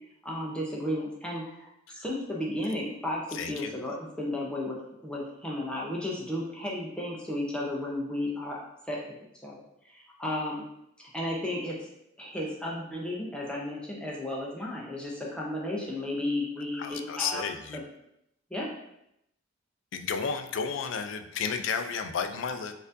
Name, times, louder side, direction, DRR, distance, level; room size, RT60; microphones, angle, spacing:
voice 1, 0.2-4.8 5.0-9.0 9.4-10.6 11.1-11.9 12.2-17.4 17.7-17.8 18.5-18.7, left 1 dB, 5° left, -4 dB, 0.5 m, -33 dB
voice 2, 3.3-3.7 16.7-17.8 19.9-22.7, left 6 dB, 65° left, 8 dB, 0.3 m, -32 dB
4.3 x 2.5 x 2.5 m, 0.79 s
head